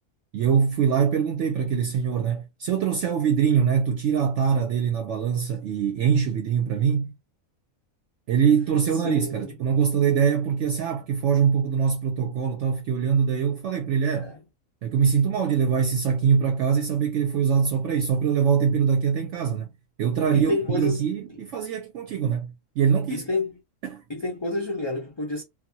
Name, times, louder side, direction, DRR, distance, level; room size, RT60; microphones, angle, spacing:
voice 1, 0.3-7.1 8.3-14.3 14.8-19.7 20.0-23.3 23.8-24.0, right 7 dB, 70° right, 0.8 m, -23 dB
voice 2, 9.0-9.5 14.2-14.4 20.3-21.0 23.1-23.5 24.1-25.4, left 2 dB, 30° left, 0.5 m, -29 dB
2.7 x 2.4 x 2.7 m
omnidirectional pair, 1.4 m